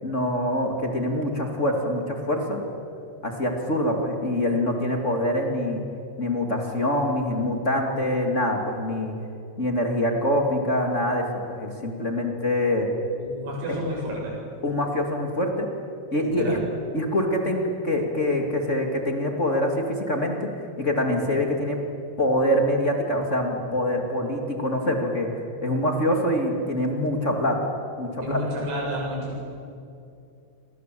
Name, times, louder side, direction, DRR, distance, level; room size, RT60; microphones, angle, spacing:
voice 1, 0.0-2.6 3.2-5.8 6.2-9.1 9.6-12.9 13.7-13.8 14.6-15.7 16.1-16.6 16.9-20.5 20.8-21.8 22.2-25.3 25.6-27.6 28.0-28.4, left 1 dB, 25° left, 2 dB, 1.6 m, -25 dB
voice 2, 13.2-14.3 16.2-16.6 28.2-29.4, equal, 80° right, -3 dB, 10.5 m, -30 dB
29.0 x 25.0 x 7.8 m, 2.5 s
omnidirectional pair, 5.3 m